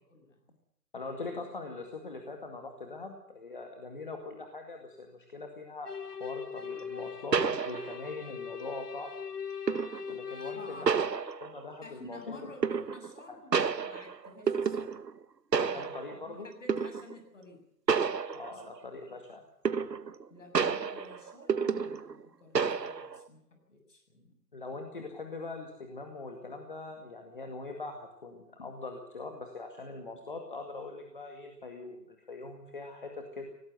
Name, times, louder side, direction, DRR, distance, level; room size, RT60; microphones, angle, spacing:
voice 1, 0.9-9.1 10.1-10.9 11.4-12.4 13.3-13.4 15.6-16.5 18.3-19.4 24.5-33.5, left 3 dB, 30° left, 4 dB, 2.1 m, -42 dB
sound 1, 5.8-10.9, left 6 dB, 70° left, 2.2 m, -40 dB
sound 2, 6.7-6.8 7.3-8.2 9.7-10.1 10.9-11.7 12.6-13.2 13.5-15.2 15.5-16.2 16.7-17.1 17.9-18.8 19.6-20.2 20.5-22.2 22.5-23.2, right 6 dB, 75° right, 1.4 m, -30 dB
voice 2, 10.5-10.9 11.8-15.0 15.7-15.9 16.2-17.6 18.5-18.6 19.1-19.2 20.3-23.4 23.7-24.4, left 1 dB, 45° left, 4 dB, 7.5 m, -51 dB
18.5 x 18.0 x 7.9 m, 0.77 s
figure-of-eight pair, 175°, 50 cm